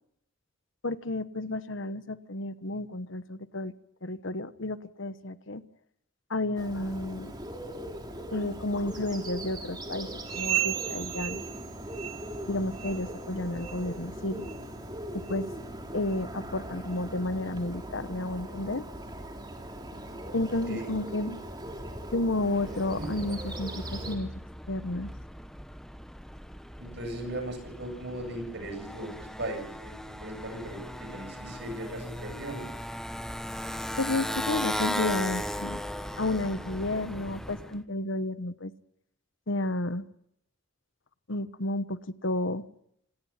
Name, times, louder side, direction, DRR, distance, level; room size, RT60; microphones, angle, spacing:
voice 1, 0.8-3.7 4.0-5.6 6.3-7.3 8.3-11.4 12.5-14.5 15.1-15.5 15.9-18.8 20.3-21.4 22.1-24.3 24.7-25.1 34.0-35.8 36.2-38.7 39.5-40.1 41.3-42.6, left 2 dB, 65° left, 13 dB, 1.1 m, -31 dB
Bird, 6.6-24.2, right 1 dB, 20° right, 3.3 m, -40 dB
sound 1, 10.2-12.5 12.7-13.1 13.6-13.8 14.4-14.6 15.3-15.4 16.1-16.2, right 12 dB, 80° right, 2.1 m, -34 dB
Motorcycle, 22.4-37.8, equal, 5° left, 1.1 m, -37 dB
voice 2, 23.9-24.2 26.8-32.7, right 1 dB, 60° right, 6 dB, 7.6 m, -38 dB
27.0 x 19.0 x 5.8 m, 0.75 s
head